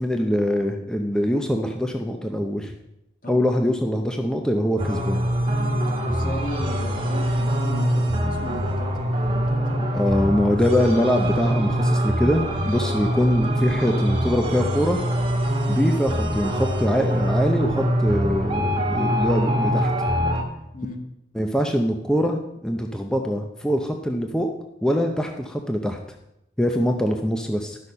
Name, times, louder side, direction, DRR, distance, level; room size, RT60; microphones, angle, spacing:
voice 1, 0.0-2.7 3.3-5.2 9.9-15.0 15.7-19.9 21.4-24.5 24.8-26.0 26.6-27.8, equal, 5° left, 3 dB, 0.6 m, -23 dB
sound 1, 4.8-20.4, equal, 30° right, 1.4 m, -23 dB
voice 2, 5.9-9.8 20.7-21.0, left 1 dB, 50° left, 3 dB, 1.7 m, -36 dB
11.5 x 6.4 x 5.4 m, 0.86 s
head